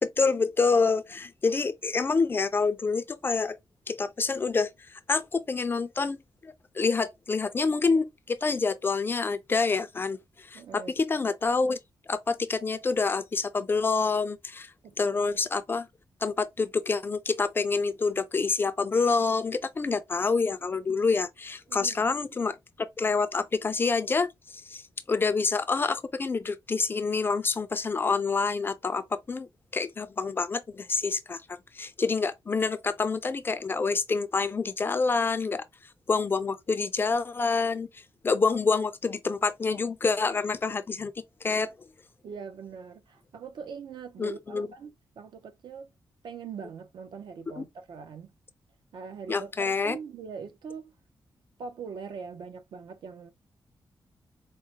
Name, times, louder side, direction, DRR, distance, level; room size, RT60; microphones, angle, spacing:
voice 1, 0.0-3.6 3.9-4.7 5.1-11.8 12.1-14.7 15.0-15.9 16.2-22.6 23.0-24.8 25.1-31.4 31.7-35.6 36.1-37.9 38.2-41.1 41.4-41.7 44.2-44.7 47.6-47.7 49.3-50.0, left 4 dB, 25° left, 0.3 m, -27 dB
voice 2, 10.5-10.9 14.8-15.2 21.7-22.1 42.2-45.9 46.2-48.3 48.9-50.9 51.6-53.3, right 6 dB, 70° right, 0.6 m, -42 dB
4.6 x 2.0 x 2.7 m
wide cardioid pair, 160°, 8 cm